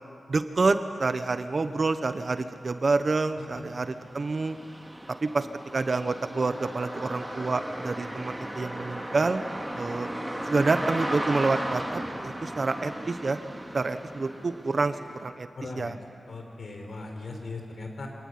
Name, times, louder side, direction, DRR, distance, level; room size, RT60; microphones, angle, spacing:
voice 1, 0.3-4.6 5.2-5.5 5.7-9.4 9.8-10.1 10.4-13.4 13.7-15.5 15.8-15.9, right 3 dB, 40° right, 9 dB, 1.2 m, -27 dB
sound 1, 1.9-2.0 2.4-15.3, right 1 dB, 10° right, 2.7 m, -36 dB
voice 2, 15.6-16.0 16.3-18.1, left 3 dB, 60° left, 3 dB, 4.4 m, -39 dB
26.5 x 18.5 x 9.7 m, 2.4 s
wide cardioid pair, 135°, 0 cm